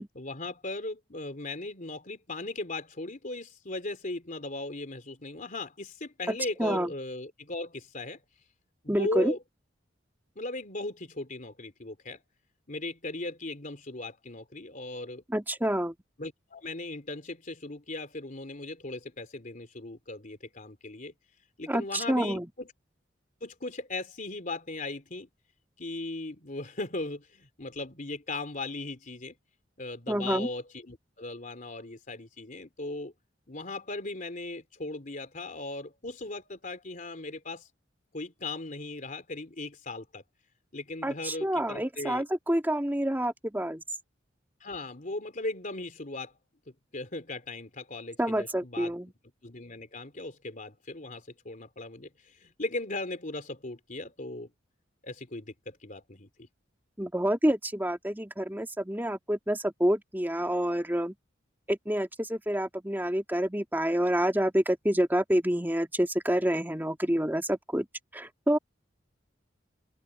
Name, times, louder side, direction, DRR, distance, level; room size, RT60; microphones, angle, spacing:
voice 1, 0.1-8.2 8.8-9.4 10.3-12.2 12.7-15.2 16.2-21.1 21.6-22.7 23.4-25.3 25.8-29.3 29.8-33.1 33.5-37.7 38.1-40.2 40.7-42.2 44.6-46.3 46.7-48.9 49.4-54.5 55.0-56.5, left 2 dB, 45° left, 3.4 m, -38 dB
voice 2, 6.3-6.9 8.9-9.3 15.3-16.0 21.7-22.5 30.1-30.5 41.0-43.8 48.2-49.1 57.0-61.1 61.7-67.9 68.1-68.6, equal, 10° right, 2.5 m, -28 dB
open air
head